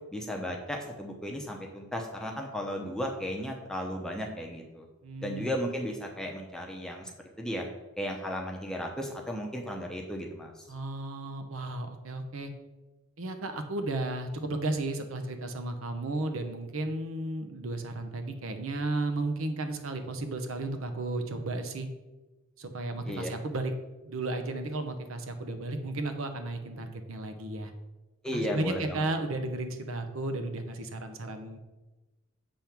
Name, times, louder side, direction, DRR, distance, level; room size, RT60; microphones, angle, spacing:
voice 1, 0.1-4.9 5.2-7.1 7.4-7.7 8.0-10.7 23.0-23.3 28.2-29.1, equal, 5° left, 1 dB, 0.7 m, -35 dB
voice 2, 5.0-5.5 10.7-12.5 13.2-21.9 22.6-23.7 24.0-27.7 28.3-31.6, right 2 dB, 70° right, 7 dB, 0.8 m, -34 dB
7.4 x 3.5 x 5.9 m, 1.1 s
head